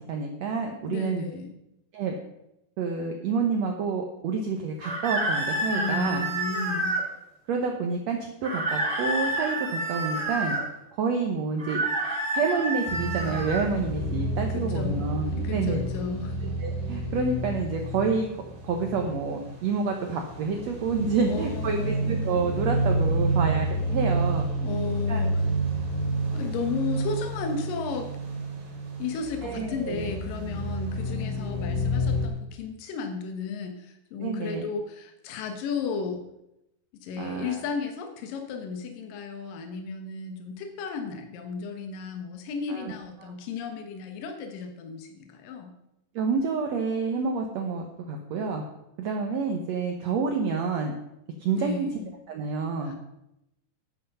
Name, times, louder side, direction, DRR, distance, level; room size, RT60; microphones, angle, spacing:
voice 1, 0.1-1.3 1.9-2.1 2.8-6.2 7.5-10.6 11.0-11.8 12.3-15.8 16.6-18.3 18.6-24.5 25.1-25.2 29.4-30.1 34.2-34.7 37.2-37.6 42.7-42.9 43.2-43.3 46.2-48.6 49.0-50.9 51.4-51.9 52.3-53.0, right 5 dB, 65° right, 3 dB, 1.9 m, -28 dB
voice 2, 0.8-1.5 5.7-7.0 14.5-15.0 15.3-16.4 21.3-22.1 24.6-25.5 26.3-28.1 29.0-36.2 37.0-45.7 51.6-52.1 52.8-53.0, left 5 dB, 80° left, 5 dB, 2.9 m, -34 dB
sound 1, 4.8-7.0 8.4-10.6 11.6-13.7, right 1 dB, 20° right, 2.3 m, -29 dB
sound 2, 12.9-32.3, right 1 dB, 85° right, 5.4 m, -29 dB
11.5 x 9.2 x 5.5 m, 0.86 s
omnidirectional pair, 3.9 m